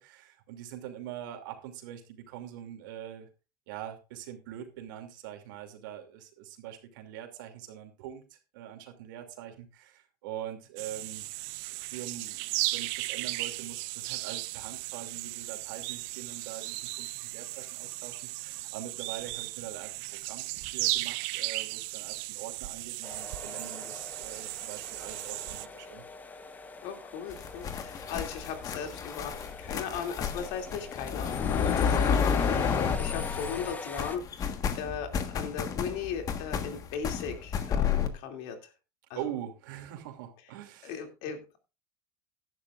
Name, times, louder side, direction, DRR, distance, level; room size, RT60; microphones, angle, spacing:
voice 1, 0.0-3.3 3.7-11.3 11.8-20.5 20.7-26.0 39.1-41.0, right 11 dB, 90° right, 4 dB, 2.7 m, -43 dB
sound 1, 10.8-25.7, right 21 dB, 65° right, 0.7 m, -36 dB
sound 2, 23.0-34.2, left 3 dB, 15° left, 1.1 m, -44 dB
voice 2, 26.8-29.3 29.6-38.7 39.1-39.2 40.8-41.6, left 7 dB, 65° left, 5 dB, 2.7 m, -38 dB
sound 3, 27.3-33.7 34.0-38.1, left 7 dB, 35° left, 1.5 m, -30 dB
16.0 x 11.0 x 2.5 m, 0.31 s
supercardioid pair, 135°, 10 cm